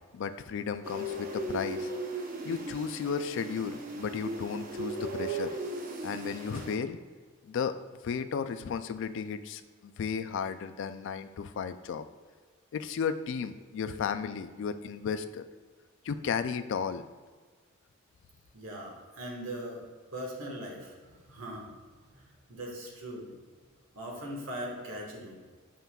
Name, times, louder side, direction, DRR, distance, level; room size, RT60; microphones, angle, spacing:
voice 1, 0.1-1.9 2.4-5.6 6.0-7.0 7.4-7.8 8.0-12.0 12.7-15.4 16.0-17.0, left 6 dB, 60° left, 11 dB, 0.3 m, -34 dB
sound 1, 0.8-6.8, right 1 dB, 40° right, 0.7 m, -37 dB
voice 2, 18.5-19.8 20.1-21.7 22.0-23.3 23.9-25.4, equal, 75° right, -1 dB, 1.4 m, -40 dB
7.4 x 5.6 x 2.3 m, 1.5 s
head